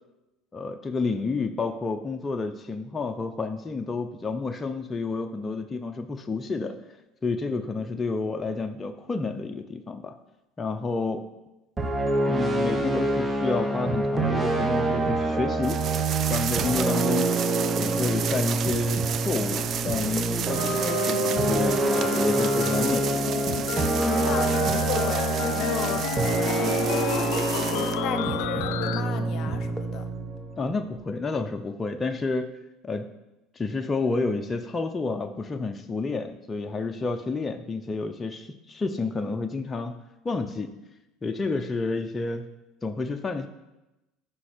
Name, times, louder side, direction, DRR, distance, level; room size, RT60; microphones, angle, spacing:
voice 1, 0.5-6.9 7.2-10.2 10.6-11.3 12.3-15.8 16.3-17.4 17.8-23.2 30.6-32.5 32.8-33.1 33.5-40.0 40.2-40.8 41.2-42.5 42.8-43.5, left 3 dB, 25° left, 5 dB, 0.7 m, -30 dB
sound 1, 11.8-30.9, right 2 dB, 20° right, 1.3 m, -26 dB
sound 2, 15.6-28.0, right 8 dB, 45° right, 0.5 m, -33 dB
sound 3, 20.6-29.0, left 13 dB, 80° left, 0.4 m, -33 dB
voice 2, 24.0-30.1, left 8 dB, 55° left, 9 dB, 0.9 m, -34 dB
13.0 x 5.3 x 4.5 m, 0.98 s
supercardioid pair, 95°, 0 cm